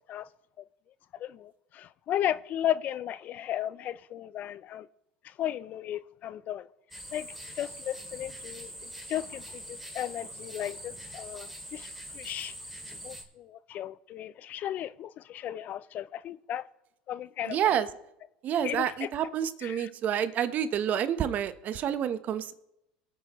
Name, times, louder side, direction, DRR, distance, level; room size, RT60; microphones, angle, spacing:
voice 1, 1.1-4.9 5.4-6.7 7.1-7.3 7.6-11.9 12.1-12.5 13.0-16.6 17.1-17.6 18.6-19.1 19.6-19.9, left 11 dB, 45° left, 0.4 m, -35 dB
sound 1, 6.9-13.2, equal, ahead, 2.5 m, -43 dB
voice 2, 17.4-17.9 18.4-22.5, right 9 dB, 45° right, 0.9 m, -29 dB
23.0 x 8.4 x 3.1 m
supercardioid pair, 95°, 4 cm